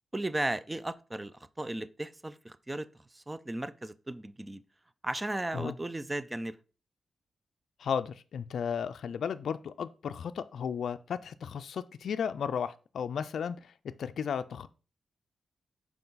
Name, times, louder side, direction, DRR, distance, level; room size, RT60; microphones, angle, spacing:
voice 1, 0.1-2.9 3.1-4.6 5.0-6.6, right 1 dB, 15° right, 0.4 m, -35 dB
voice 2, 7.8-14.7, left 7 dB, 80° left, 0.3 m, -34 dB
5.6 x 4.7 x 4.0 m
cardioid pair, 80°, 0 cm